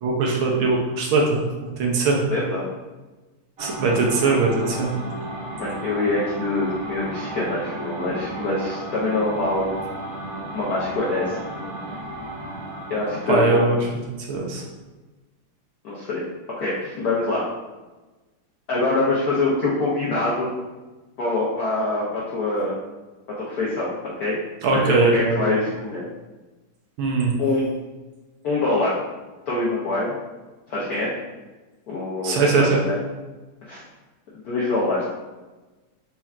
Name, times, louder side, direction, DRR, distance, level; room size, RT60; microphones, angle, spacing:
voice 1, 0.0-2.2 3.6-4.9 13.3-13.8 14.3-14.6 24.6-25.5 27.0-27.4 32.2-32.8, right 3 dB, 75° right, -1 dB, 1.5 m, -20 dB
voice 2, 2.3-2.7 5.6-9.8 10.5-11.4 12.9-13.8 15.8-16.2 16.6-17.4 18.7-20.5 21.2-22.7 23.4-24.4 24.7-26.0 27.4-27.6 28.4-29.0 29.5-30.1 30.7-31.1 31.9-33.0 33.6-33.8 34.4-35.0, left 2 dB, 70° left, -6 dB, 0.9 m, -24 dB
sound 1, 3.6-13.4, right 1 dB, 55° right, 0.6 m, -34 dB
4.4 x 4.3 x 2.4 m, 1.2 s
omnidirectional pair, 2.4 m